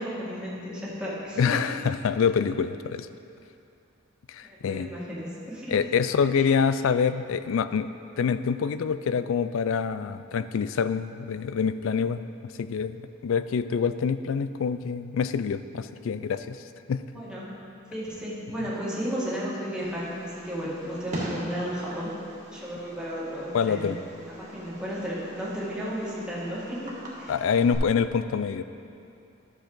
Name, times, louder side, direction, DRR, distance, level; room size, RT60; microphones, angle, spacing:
voice 1, 0.0-1.7 4.4-5.7 6.3-6.5 17.1-17.6 17.9-22.1 22.5-23.9 24.4-27.4, equal, 5° right, -8 dB, 1.8 m, -34 dB
voice 2, 1.4-3.1 4.3-4.9 5.7-7.9 8.2-12.2 12.6-13.0 13.2-16.6 16.9-17.0 23.5-24.0 27.3-28.6, left 6 dB, 70° left, 12 dB, 0.3 m, -26 dB
Fireworks, 19.8-27.8, right 1 dB, 35° right, 1.6 m, -42 dB
12.5 x 6.6 x 3.9 m, 2.7 s
head